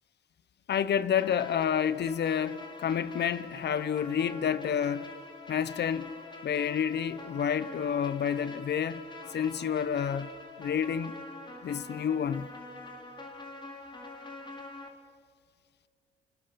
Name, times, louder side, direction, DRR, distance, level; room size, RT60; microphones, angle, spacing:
voice 1, 0.7-5.1 5.5-6.1 6.4-9.0 9.3-10.3 10.6-11.2 11.6-12.5, left 8 dB, 60° left, 1.2 m, -29 dB
sound 1, 1.2-14.9, left 3 dB, 25° left, 4.6 m, -45 dB
30.0 x 26.5 x 7.2 m
cardioid pair, 90°, 20 cm